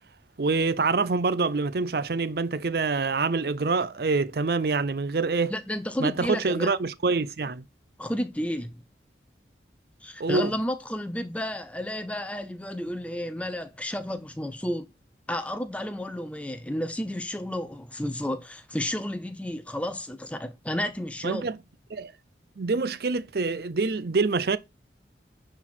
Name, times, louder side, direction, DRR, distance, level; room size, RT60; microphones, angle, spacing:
voice 1, 0.4-5.5 6.0-7.6 10.2-10.5 21.2-21.6 21.9-22.1 22.6-24.6, right 4 dB, 60° right, 0.5 m, -26 dB
voice 2, 5.5-6.7 8.0-8.8 10.0-14.9 15.3-21.5, left 1 dB, 10° left, 0.8 m, -32 dB
10.0 x 4.5 x 4.3 m
head